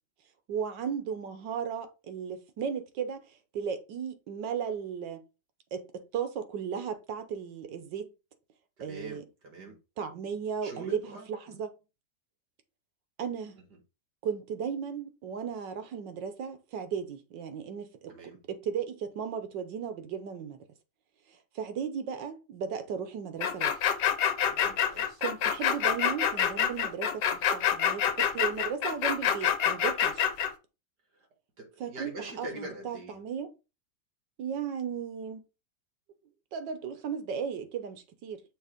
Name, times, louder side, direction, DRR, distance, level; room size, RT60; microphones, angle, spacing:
voice 1, 0.5-5.2 5.7-8.1 8.8-9.2 9.6-11.7 13.2-13.6 14.2-18.1 18.5-20.6 21.5-23.8 25.2-30.3 31.8-33.5 34.4-35.4 36.5-38.4, right 7 dB, 85° right, 1.6 m, -35 dB
voice 2, 8.8-9.8 10.6-11.6 13.7-13.8 18.1-18.4 24.4-25.2 31.6-33.2, right 2 dB, 70° right, 2.4 m, -44 dB
sound 1, 23.4-30.5, left 8 dB, 75° left, 1.4 m, -26 dB
6.3 x 3.1 x 5.0 m
omnidirectional pair, 1.9 m